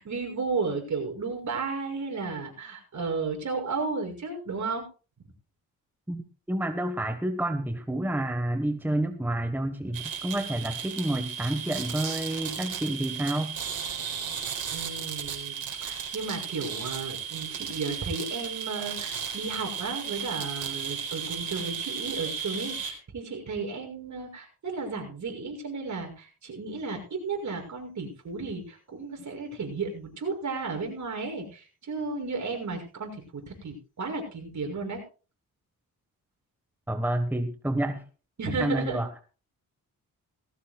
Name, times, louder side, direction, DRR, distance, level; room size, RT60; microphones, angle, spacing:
voice 1, 0.0-4.8 14.7-33.2 33.5-35.0 38.4-39.0, right 4 dB, 50° right, 3 dB, 6.2 m, -33 dB
voice 2, 6.1-13.5 36.9-38.0 38.5-39.1, right 1 dB, 5° right, 7 dB, 1.2 m, -29 dB
sound 1, 9.9-22.9, right 7 dB, 70° right, 4.3 m, -35 dB
19.0 x 15.5 x 2.3 m, 0.35 s
cardioid pair, 110°, 36 cm